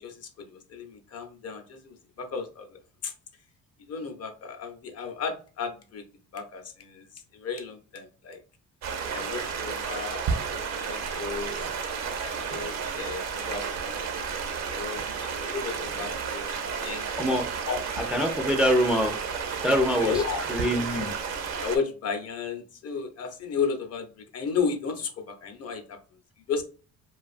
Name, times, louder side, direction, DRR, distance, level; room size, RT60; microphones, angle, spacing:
voice 1, 0.0-2.8 3.0-3.1 3.9-6.0 6.3-8.4 9.1-11.6 12.2-14.2 14.5-16.5 16.8-17.3 17.6-17.8 19.7-20.4 21.6-26.0 26.5-26.6, left 5 dB, 50° left, 5 dB, 0.6 m, -34 dB
Stream, 8.8-21.8, right 6 dB, 60° right, 0.6 m, -32 dB
voice 2, 18.1-19.1 19.6-20.1 20.5-21.1, equal, 5° right, 2 dB, 0.4 m, -24 dB
2.5 x 2.3 x 2.4 m, 0.37 s
cardioid pair, 115°, 31 cm